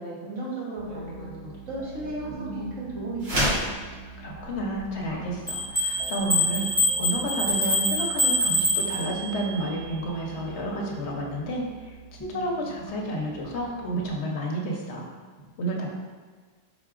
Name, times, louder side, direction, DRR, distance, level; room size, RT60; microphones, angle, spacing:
voice 1, 0.0-3.5, right 2 dB, 75° right, -6 dB, 1.5 m, -35 dB
sound 1, 0.8-14.1, right 2 dB, 20° left, 0.7 m, -43 dB
sound 2, 3.2-3.7, equal, 55° right, 1.4 m, -24 dB
voice 2, 4.2-15.0 15.6-15.9, right 1 dB, 65° left, -1 dB, 1.0 m, -31 dB
sound 3, 5.5-9.4, left 1 dB, 10° right, 1.1 m, -25 dB
4.7 x 3.9 x 2.4 m, 1.5 s
omnidirectional pair, 1.3 m